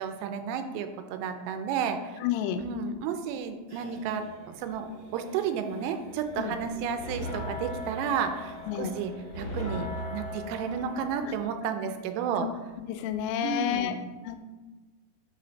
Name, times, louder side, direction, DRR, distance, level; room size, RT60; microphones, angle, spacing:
voice 1, 0.0-2.2 2.6-4.9 5.1-12.5 13.4-14.0, right 7 dB, 85° right, 7 dB, 3.3 m, -32 dB
voice 2, 2.2-2.6 6.4-6.6 8.7-8.9 12.4-12.5 12.9-14.0 14.2-14.4, left 10 dB, 90° left, 8 dB, 3.3 m, -30 dB
sound 1, 2.5-11.6 11.9-12.0 12.3-12.4 12.7-13.1, right 1 dB, 40° right, 1.6 m, -51 dB
sound 2, 6.3-11.4, left 1 dB, 45° left, 2.2 m, -38 dB
7.4 x 4.9 x 4.0 m, 1.3 s
omnidirectional pair, 6.0 m